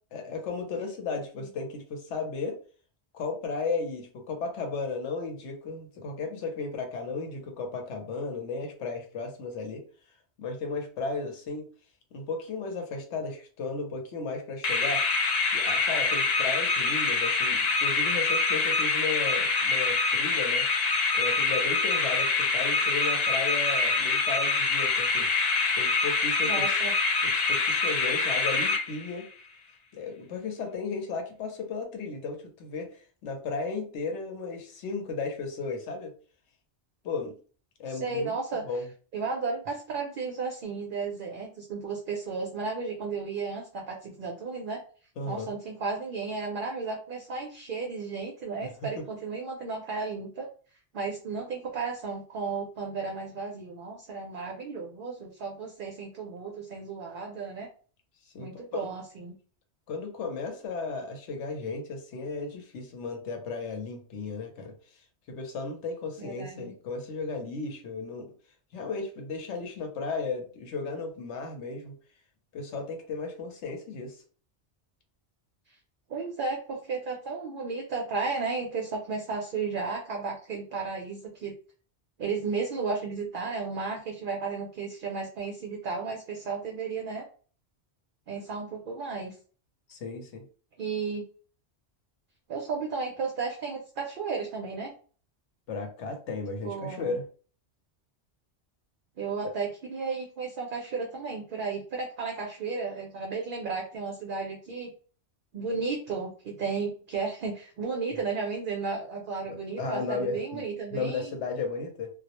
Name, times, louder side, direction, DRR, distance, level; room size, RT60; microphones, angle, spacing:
voice 1, 0.1-2.6 3.1-9.8 10.4-11.7 12.1-15.0 15.5-20.7 21.1-26.7 27.2-29.2 29.9-33.0 33.2-36.1 37.0-37.4 37.8-38.4 38.7-38.9 45.2-45.5 48.6-49.1 58.3-58.9 59.9-64.7 65.3-68.3 68.7-71.9 72.5-74.2 89.9-90.5 95.7-97.2 99.4-99.5 109.5-110.6 110.9-112.1, left 4 dB, 90° left, 3 dB, 1.0 m, -35 dB
sound 1, 14.6-29.3, left 4 dB, 55° left, 0.5 m, -25 dB
voice 2, 26.4-26.9 37.9-38.6 39.1-44.8 45.3-50.5 50.9-57.7 58.4-59.3 66.2-66.7 76.1-81.5 82.2-87.3 88.3-89.3 90.8-91.2 92.5-94.9 96.6-97.2 99.2-104.9 105.5-111.3, right 4 dB, 60° right, 1 dB, 0.6 m, -34 dB
2.2 x 2.0 x 2.8 m, 0.40 s
omnidirectional pair, 1.1 m